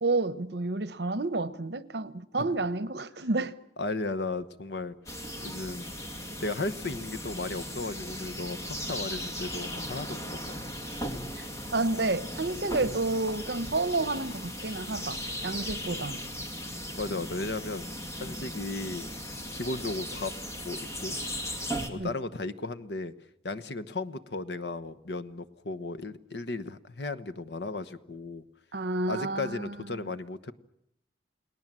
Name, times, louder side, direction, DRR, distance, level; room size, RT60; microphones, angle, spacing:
voice 1, 0.0-3.5 10.8-11.0 11.3-11.4 11.7-16.3 22.0-22.1 28.7-30.0, right 2 dB, 65° right, 1.0 m, -30 dB
voice 2, 3.8-5.0 5.4-5.9 6.4-10.6 15.8-15.9 16.9-17.9 18.2-19.1 19.5-20.3 20.6-21.2 21.8-23.1 23.4-28.5 29.1-30.5, left 2 dB, 70° left, 1.1 m, -35 dB
sound 1, 5.1-21.9, equal, 15° left, 2.4 m, -37 dB
29.5 x 19.5 x 7.6 m
head